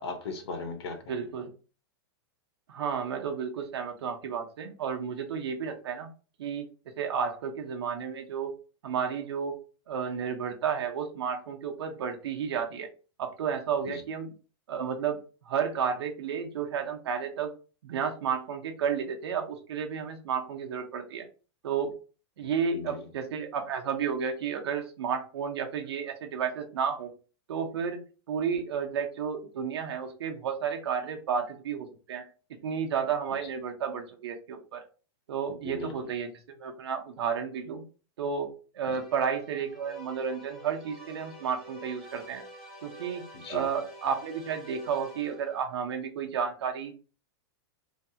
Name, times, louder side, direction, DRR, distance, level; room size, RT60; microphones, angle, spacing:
voice 1, 0.0-1.3 13.8-14.0 22.4-23.1 35.6-35.9 38.9-39.0 43.3-43.6, left 3 dB, 85° left, 0.9 m, -38 dB
voice 2, 1.1-1.5 2.7-6.1 6.4-6.7 7.0-8.5 8.8-9.5 9.9-12.9 13.2-14.3 14.7-17.5 17.8-21.3 21.6-21.9 22.4-27.1 27.5-28.0 28.3-32.3 32.6-34.8 35.3-37.8 38.2-42.4 42.8-46.9, right 7 dB, 80° right, 0.8 m, -32 dB
sound 1, 38.8-45.7, equal, ahead, 0.5 m, -48 dB
3.3 x 2.3 x 2.7 m
supercardioid pair, 180°, 13 cm